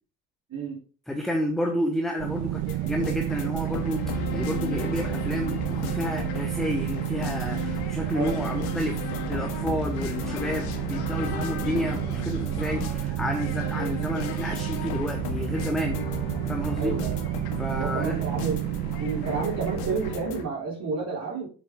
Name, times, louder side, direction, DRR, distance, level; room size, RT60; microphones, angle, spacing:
voice 1, 1.1-16.0 16.5-17.0 17.6-18.2, equal, ahead, 3 dB, 1.2 m, -30 dB
sound 1, 2.2-20.2, right 16 dB, 50° right, 0.8 m, -31 dB
sound 2, 2.7-20.4, left 7 dB, 50° left, 1.8 m, -35 dB
voice 2, 8.1-8.6 16.7-17.2 17.8-18.7 19.0-21.5, right 4 dB, 35° right, -4 dB, 3.4 m, -31 dB
7.5 x 7.1 x 3.6 m, 0.40 s
figure-of-eight pair, 70°, 49 cm